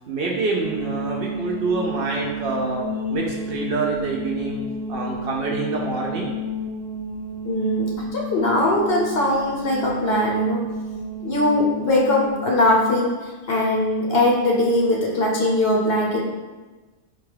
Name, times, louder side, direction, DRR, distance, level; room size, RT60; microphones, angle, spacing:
voice 1, 0.1-4.6 4.9-6.3, right 3 dB, 65° right, -2 dB, 0.7 m, -26 dB
sound 1, 0.6-13.0, right 1 dB, 90° right, 0.9 m, -31 dB
voice 2, 7.4-10.6 11.2-16.2, left 1 dB, 65° left, -2 dB, 0.8 m, -21 dB
4.4 x 2.3 x 3.2 m, 1.3 s
omnidirectional pair, 1.2 m